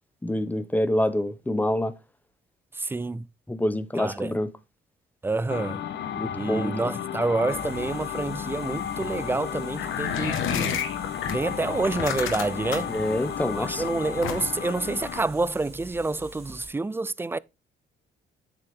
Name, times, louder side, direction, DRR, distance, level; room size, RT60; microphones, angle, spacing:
voice 1, 0.2-1.9 3.5-4.5 6.1-6.9 12.9-13.8, left 1 dB, 10° left, 0.9 m, -26 dB
voice 2, 2.7-3.3 4.0-4.3 5.2-5.8 6.3-10.8 11.3-12.9 13.5-17.4, right 3 dB, 10° right, 0.4 m, -28 dB
sound 1, 5.5-15.3, left 9 dB, 60° left, 1.0 m, -34 dB
sound 2, 7.5-16.7, right 2 dB, 30° right, 2.7 m, -45 dB
sound 3, 9.8-11.3 11.8-13.0 14.2-14.7, left 8 dB, 90° left, 1.5 m, -29 dB
7.8 x 6.9 x 3.6 m
cardioid pair, 90°, 20 cm